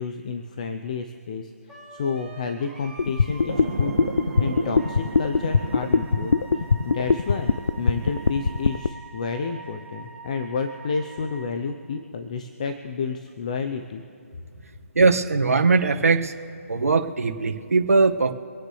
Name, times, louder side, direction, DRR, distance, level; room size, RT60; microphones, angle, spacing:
voice 1, 0.0-1.5 1.9-4.1 4.4-7.5 7.8-14.0, left 5 dB, 30° left, 6 dB, 0.8 m, -30 dB
Wind instrument woodwind instrument, 1.7-11.6, right 3 dB, ahead, 2.0 m, -44 dB
sound 1, 3.0-8.9, left 5 dB, 75° left, 0.5 m, -21 dB
sound 2, 3.5-8.8, right 5 dB, 50° right, 1.8 m, -35 dB
voice 2, 14.9-16.3 16.7-18.3, right 4 dB, 80° right, 2 dB, 1.7 m, -20 dB
26.0 x 9.3 x 3.3 m, 2.7 s
hypercardioid pair, 170°, 8 cm